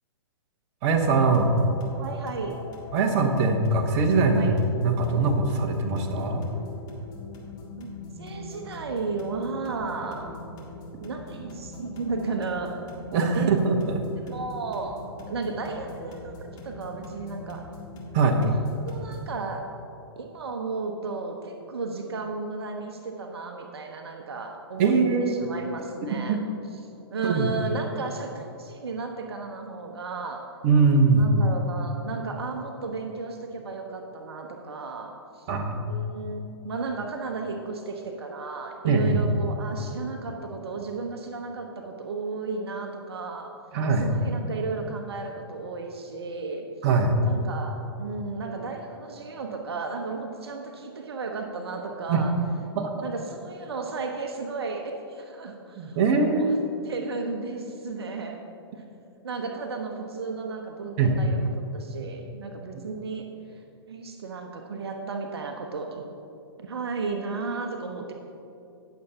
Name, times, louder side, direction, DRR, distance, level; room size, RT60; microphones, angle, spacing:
voice 1, 0.8-1.5 2.9-4.5 4.8-6.4 13.1-13.8 18.1-18.4 24.8-25.7 26.3-26.4 27.2-27.5 30.6-31.3 35.5-35.9 38.8-39.2 43.7-44.1 46.8-47.1 52.1-52.2 52.7-52.9 55.8-56.9 61.0-61.1, right 4 dB, 40° right, 3 dB, 1.2 m, -22 dB
sound 1, 0.9-19.3, left 2 dB, 30° left, 2.0 m, -42 dB
voice 2, 2.0-2.6 4.3-4.5 7.8-7.9 8.2-10.3 11.0-12.8 13.3-13.5 14.2-15.0 15.3-17.6 18.4-18.5 18.9-19.6 20.2-24.9 25.2-26.4 27.1-30.4 31.2-35.5 35.9-43.5 44.0-46.7 47.2-52.3 53.0-56.6 56.8-58.4 59.2-63.2 63.5-63.6 63.9-66.1 66.6-68.1, right 4 dB, 70° right, 3 dB, 1.0 m, -34 dB
19.0 x 7.0 x 2.9 m, 2.7 s
hypercardioid pair, 120°, 14 cm